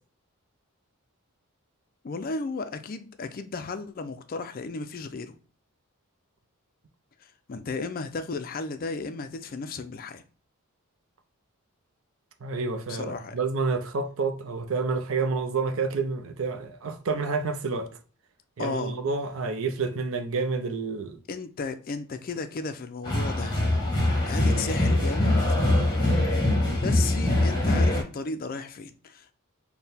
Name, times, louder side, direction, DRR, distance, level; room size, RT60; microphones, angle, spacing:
voice 1, 2.0-5.4 7.2-10.2 12.9-13.4 18.6-19.0 21.3-23.6 24.3-25.4 26.8-29.3, left 4 dB, 40° left, 0.4 m, -34 dB
voice 2, 12.4-18.0 18.6-21.2, right 4 dB, 60° right, 0.5 m, -29 dB
sound 1, 23.0-28.0, left 1 dB, 20° left, 1.0 m, -23 dB
4.4 x 2.2 x 3.4 m
head